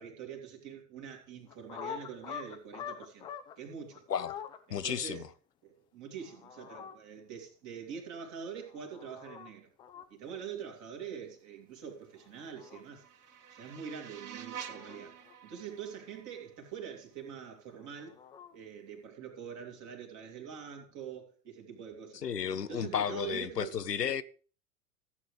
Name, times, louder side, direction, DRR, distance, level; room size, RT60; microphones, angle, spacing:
voice 1, 0.0-3.3 3.6-4.0 4.7-5.3 5.6-9.7 10.1-13.1 13.5-18.2 18.5-22.2 22.6-23.8, right 7 dB, 40° right, 3.0 m, -44 dB
sound 1, 1.5-3.5 3.9-4.6 6.2-7.0 8.6-9.5 9.8-10.0 12.2-12.8 14.4-15.3 17.7-18.6, left 8 dB, 10° left, 0.4 m, -45 dB
voice 2, 4.1-4.4 4.7-5.3 22.2-24.2, left 8 dB, 85° left, 0.7 m, -33 dB
sound 2, 12.3-17.3, right 8 dB, 70° right, 1.0 m, -49 dB
15.5 x 8.4 x 3.3 m
figure-of-eight pair, 90°, 47 cm